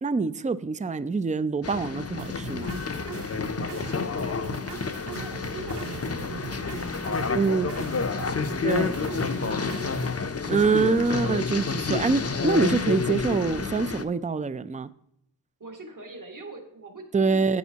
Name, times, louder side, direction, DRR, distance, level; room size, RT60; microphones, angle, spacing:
voice 1, 0.0-2.7 7.3-7.7 8.6-9.0 10.5-14.9 17.1-17.6, right 4 dB, 20° right, 0.4 m, -25 dB
sound 1, 1.6-14.0, left 4 dB, 35° left, 0.6 m, -29 dB
sound 2, 2.2-10.2, right 6 dB, 90° right, 0.7 m, -40 dB
voice 2, 3.7-10.9 11.4-11.5 15.6-17.6, right 2 dB, 50° right, 1.8 m, -46 dB
10.5 x 9.1 x 2.9 m
wide cardioid pair, 50°, 40 cm